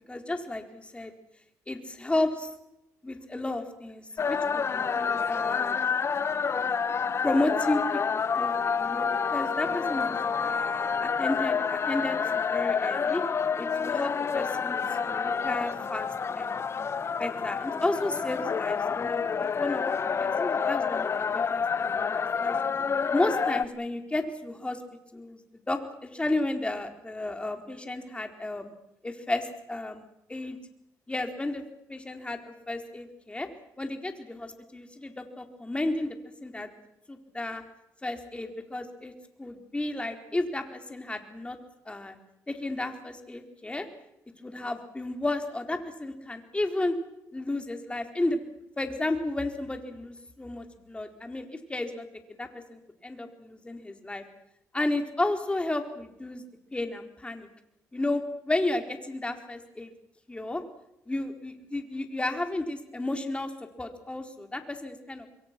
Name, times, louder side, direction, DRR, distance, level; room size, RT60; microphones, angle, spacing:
voice 1, 0.1-1.1 1.7-2.5 3.0-5.8 6.5-6.7 7.2-13.2 13.6-16.1 16.4-16.7 17.2-19.9 20.2-22.6 23.1-24.8 25.1-28.7 29.0-30.0 30.3-30.6 31.1-31.6 31.9-32.4 32.7-33.5 33.8-36.7 37.1-37.6 38.0-39.1 39.4-41.6 41.9-42.2 42.5-43.9 44.4-46.9 47.3-48.4 48.8-52.1 52.4-54.2 54.7-56.4 56.7-57.5 57.9-59.9 60.3-60.6 61.1-63.5 63.8-65.3, left 2 dB, 15° left, 5 dB, 4.3 m, -32 dB
sound 1, 4.2-23.6, left 6 dB, 45° left, 1.0 m, -28 dB
27.5 x 22.5 x 6.1 m, 0.82 s
cardioid pair, 75°, 6 cm